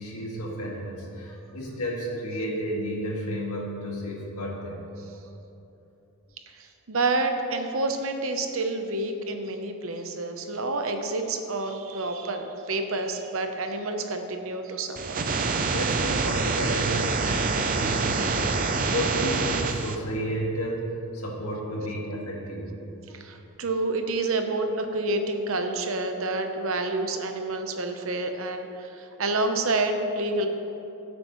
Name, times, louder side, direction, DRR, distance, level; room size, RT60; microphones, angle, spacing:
voice 1, 0.0-4.8 15.7-18.6 18.9-22.7, equal, 85° left, -2 dB, 2.0 m, -32 dB
voice 2, 6.6-15.3 23.1-30.5, right 2 dB, 65° right, 5 dB, 0.9 m, -28 dB
sound 1, 15.0-20.0, right 4 dB, 40° right, 0.5 m, -26 dB
16.5 x 7.8 x 3.1 m, 3.0 s
head